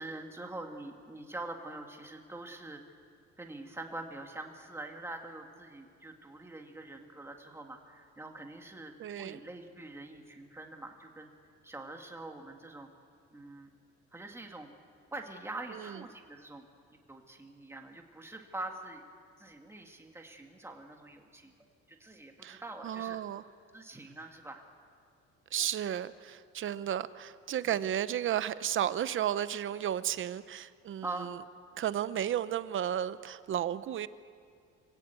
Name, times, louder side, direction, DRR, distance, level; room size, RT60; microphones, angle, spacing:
voice 1, 0.0-2.8 3.4-11.3 11.6-12.9 13.3-13.7 14.1-14.7 15.1-16.6 17.1-19.0 19.4-21.5 21.9-23.2 23.7-24.6 27.6-27.8 31.0-31.3, right 2 dB, 10° right, 3 dB, 2.0 m, -44 dB
voice 2, 9.0-9.4 15.7-16.0 22.4-23.4 25.5-31.4 31.8-34.1, right 10 dB, 45° right, 14 dB, 0.8 m, -33 dB
26.0 x 17.0 x 8.4 m, 2.3 s
cardioid pair, 155°, 29 cm